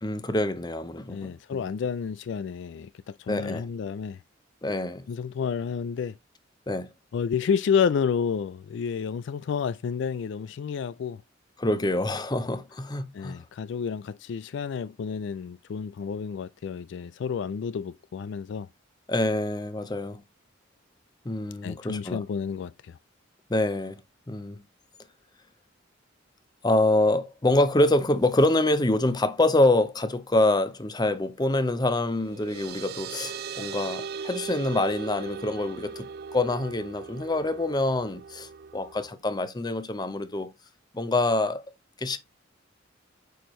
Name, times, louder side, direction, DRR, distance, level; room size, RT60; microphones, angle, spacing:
voice 1, 0.0-1.6 3.3-3.7 4.6-5.1 6.7-6.9 11.6-13.4 19.1-20.2 21.2-22.2 23.5-24.0 24.3-24.6 26.6-40.5 40.9-41.6 42.0-42.2, left 2 dB, 20° left, 0.7 m, -26 dB
voice 2, 1.1-2.9 3.2-4.2 5.1-6.2 7.1-11.2 13.1-18.7 21.6-23.0, left 6 dB, 60° left, 0.3 m, -30 dB
sound 1, 32.0-39.1, right 6 dB, 50° right, 0.4 m, -39 dB
9.3 x 4.5 x 3.1 m
head